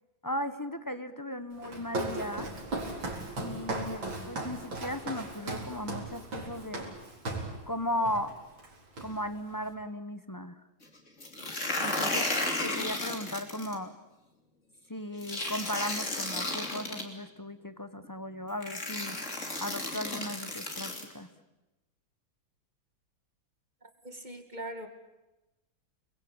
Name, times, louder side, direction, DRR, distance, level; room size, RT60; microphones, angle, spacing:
voice 1, 0.2-2.5 3.4-6.9 7.7-8.4 9.0-10.6 11.8-12.3 12.6-13.9 14.9-19.2 19.6-21.3, left 1 dB, 20° left, 11 dB, 0.6 m, -36 dB
Walk footsteps, 1.6-7.6 8.0-8.3 8.6-9.4, right 2 dB, 70° right, 5.0 m, -37 dB
sound 1, 11.2-13.8 15.2-17.0 18.0-18.1 18.6-21.0, left 2 dB, 35° left, 3.5 m, -33 dB
voice 2, 23.8-24.9, right 1 dB, 20° right, 6 dB, 2.2 m, -41 dB
29.0 x 21.5 x 8.9 m, 1.0 s
omnidirectional pair, 2.2 m